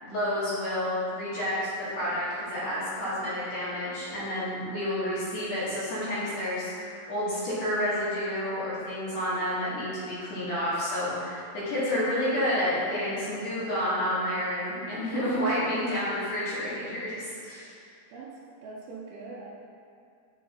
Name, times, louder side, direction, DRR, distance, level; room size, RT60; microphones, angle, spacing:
voice 1, 0.0-1.6 1.9-17.7, left 1 dB, 60° left, -10 dB, 2.5 m, -30 dB
voice 2, 17.7-19.5, right 3 dB, 80° right, -3 dB, 2.3 m, -44 dB
8.4 x 4.7 x 2.8 m, 2.4 s
omnidirectional pair, 4.6 m